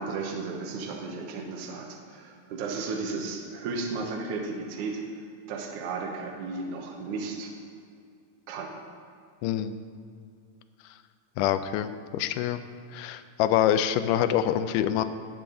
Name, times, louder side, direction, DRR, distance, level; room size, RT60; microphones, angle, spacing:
voice 1, 0.0-5.0 5.5-7.5 8.5-8.8, right 4 dB, 70° right, 1 dB, 2.3 m, -34 dB
voice 2, 9.4-9.8 11.4-12.6 12.9-15.0, left 11 dB, 80° left, 10 dB, 1.9 m, -25 dB
17.5 x 7.0 x 3.8 m, 2.3 s
omnidirectional pair, 4.0 m